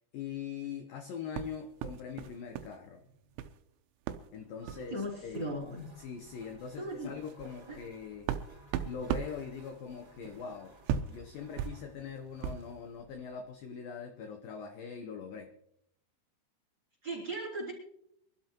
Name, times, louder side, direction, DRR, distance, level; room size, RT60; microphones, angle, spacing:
voice 1, 0.1-3.0 4.3-5.6 6.0-8.3 8.8-10.8 11.1-15.5, left 6 dB, 80° left, 6 dB, 2.0 m, -42 dB
sound 1, 1.3-2.8 3.0-3.6 4.1-4.3 4.6-4.9 5.8-5.9 6.2-6.4 6.9-12.8, right 9 dB, 85° right, 3.2 m, -38 dB
sound 2, 4.3-13.7, equal, 5° right, 3.5 m, -59 dB
voice 2, 4.6-5.9 6.8-7.1 7.7-7.8 17.0-17.7, right 1 dB, 25° right, -7 dB, 3.6 m, -38 dB
25.0 x 12.0 x 3.0 m, 0.75 s
omnidirectional pair, 5.4 m